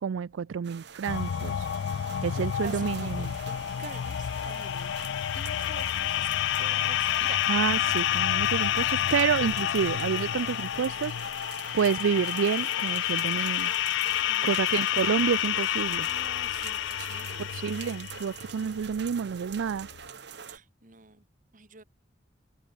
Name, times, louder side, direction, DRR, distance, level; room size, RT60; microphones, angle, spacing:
voice 1, 0.0-1.7 2.2-3.4 7.5-11.2 11.7-13.7 14.4-16.1 17.4-19.9, right 7 dB, 85° right, 0.4 m, -29 dB
sound 1, 0.6-20.6, right 7 dB, 60° right, 1.2 m, -45 dB
sound 2, 1.1-20.0, left 11 dB, 65° left, 0.3 m, -29 dB
voice 2, 2.4-4.9 5.3-6.3 6.6-7.4 14.3-14.8 16.0-17.5 20.5-21.2 21.5-21.8, right 4 dB, 40° right, 1.5 m, -47 dB
head